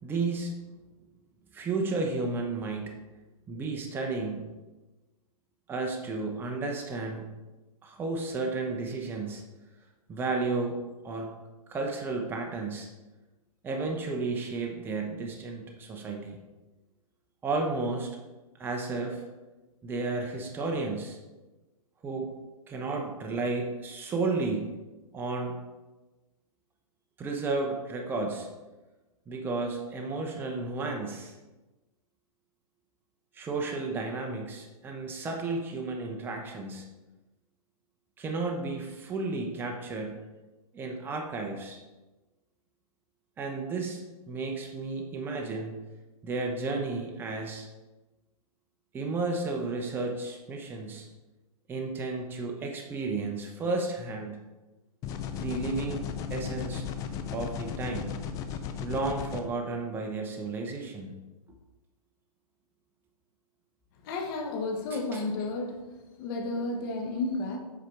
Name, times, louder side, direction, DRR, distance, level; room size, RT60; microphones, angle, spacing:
voice 1, 0.0-0.5 1.5-3.0 3.5-4.5 5.7-7.2 7.8-9.4 10.1-11.3 11.7-12.9 13.6-16.4 17.4-18.1 18.6-19.2 19.8-21.2 22.0-22.4 22.7-24.8 25.1-25.6 27.2-28.5 29.3-31.4 33.3-36.8 38.2-40.2 40.7-41.8 43.4-45.8 46.2-47.7 48.9-51.1 51.7-54.4 55.4-56.0 56.3-56.8 57.3-58.2 58.8-61.1 64.9-65.2, right 3 dB, 10° right, 2 dB, 0.8 m, -32 dB
sound 1, 55.0-59.4, left 7 dB, 15° left, 0.4 m, -35 dB
voice 2, 64.0-65.8 66.2-67.6, left 2 dB, 35° left, 2 dB, 1.4 m, -32 dB
8.3 x 4.9 x 4.5 m, 1.1 s
hypercardioid pair, 145°, 20 cm